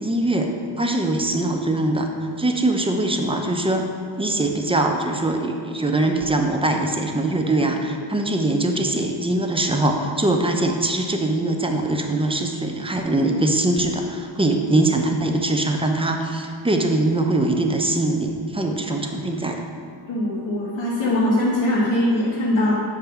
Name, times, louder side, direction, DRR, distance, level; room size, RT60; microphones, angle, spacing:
voice 1, 0.0-0.5 0.8-2.1 2.4-3.8 4.2-19.6, right 2 dB, 15° right, 3 dB, 0.5 m, -22 dB
voice 2, 20.1-22.7, left 1 dB, 80° left, -8 dB, 1.1 m, -21 dB
7.0 x 2.7 x 5.5 m, 2.3 s
wide cardioid pair, 75°, 45 cm